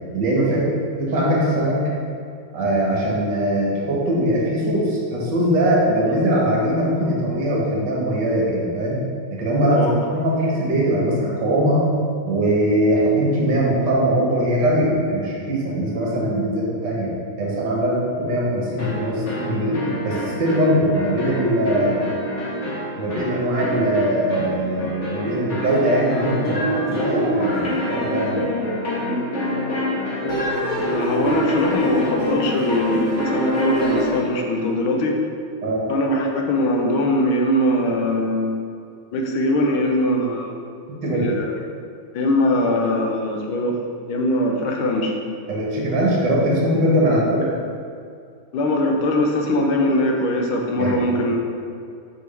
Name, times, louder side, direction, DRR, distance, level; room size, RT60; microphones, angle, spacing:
voice 1, 0.1-0.7 1.0-1.8 2.5-9.0 9.3-9.9 10.1-11.9 12.3-17.1 17.4-19.8 20.0-22.0 23.0-28.5 35.6-35.9 41.0-41.3 45.5-47.5 50.8-50.9, right 1 dB, 60° right, -5 dB, 2.0 m, -21 dB
sound 1, 18.8-34.3, left 1 dB, 40° left, 1.4 m, -26 dB
voice 2, 30.2-35.2 35.9-38.5 39.1-40.5 41.1-41.6 42.1-43.8 44.1-45.2 47.1-47.2 48.5-51.4, left 1 dB, 90° left, 1 dB, 1.6 m, -21 dB
6.2 x 5.7 x 3.4 m, 2.3 s
omnidirectional pair, 2.2 m